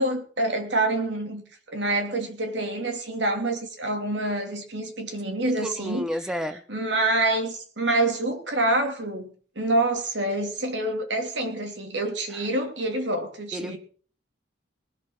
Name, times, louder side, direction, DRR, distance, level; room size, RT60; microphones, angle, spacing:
voice 1, 0.0-1.4 1.7-6.1 6.7-13.8, right 2 dB, 75° right, 4 dB, 3.0 m, -26 dB
voice 2, 5.6-6.6 13.5-13.8, equal, 5° right, 11 dB, 0.7 m, -30 dB
19.5 x 7.2 x 6.0 m, 0.43 s
head